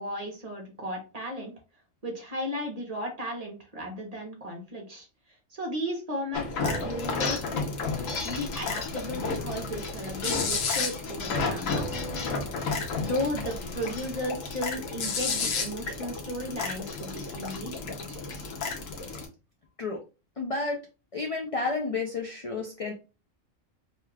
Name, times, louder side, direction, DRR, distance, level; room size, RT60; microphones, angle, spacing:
voice 1, 0.0-1.5 2.0-5.1 5.5-7.7 8.2-11.9 13.0-18.2, equal, 35° right, 1 dB, 0.8 m, -35 dB
sound 1, 6.3-19.3, left 4 dB, 85° left, 1.2 m, -32 dB
voice 2, 20.4-20.8 21.1-22.9, left 3 dB, 65° left, 1 dB, 0.3 m, -31 dB
2.9 x 2.3 x 3.2 m, 0.30 s
omnidirectional pair, 1.3 m